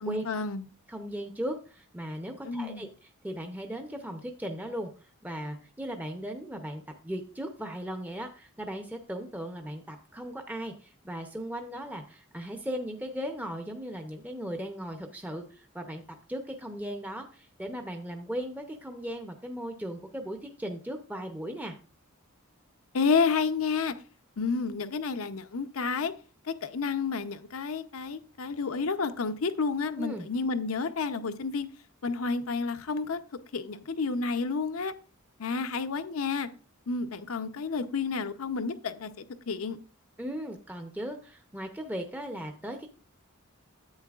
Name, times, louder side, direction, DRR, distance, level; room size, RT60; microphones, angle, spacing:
voice 1, 0.0-0.7 2.4-2.9 22.9-23.9 24.4-26.1 26.5-31.7 32.0-33.2 33.5-34.9 35.4-36.5 36.9-39.1 39.5-39.8, left 4 dB, 75° left, 10 dB, 0.7 m, -30 dB
voice 2, 0.9-4.9 5.2-16.0 16.3-21.7 30.0-30.3 40.2-42.9, equal, 5° right, 4 dB, 0.6 m, -37 dB
10.5 x 8.3 x 2.4 m, 0.36 s
head